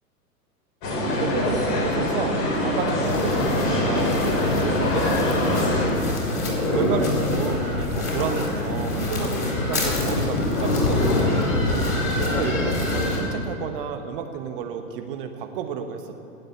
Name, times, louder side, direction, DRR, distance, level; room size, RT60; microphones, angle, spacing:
sound 1, 0.8-5.9, left 1 dB, 35° left, 4.3 m, -24 dB
voice 1, 1.2-6.0 6.7-11.4 12.1-16.1, right 7 dB, 35° right, 7 dB, 1.1 m, -32 dB
sound 2, 3.0-13.2, left 2 dB, 60° left, 4.7 m, -24 dB
18.0 x 7.9 x 8.3 m, 2.6 s
figure-of-eight pair, 110°, 48 cm